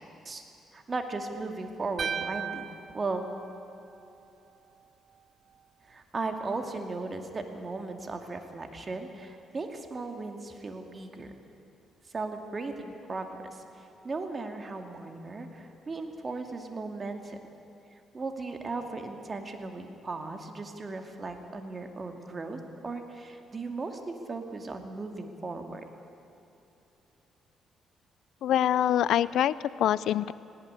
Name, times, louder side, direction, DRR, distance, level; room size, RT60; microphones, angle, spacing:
voice 1, 0.7-2.7 2.9-3.3 5.9-11.3 12.1-17.4 17.9-25.8, right 3 dB, 35° right, 5 dB, 2.5 m, -37 dB
sound 1, 2.0-4.2, right 7 dB, 50° right, 0.5 m, -37 dB
voice 2, 28.4-30.3, left 11 dB, 80° left, 18 dB, 0.5 m, -25 dB
18.5 x 18.0 x 9.8 m, 2.9 s
cardioid pair, 90°, 0 cm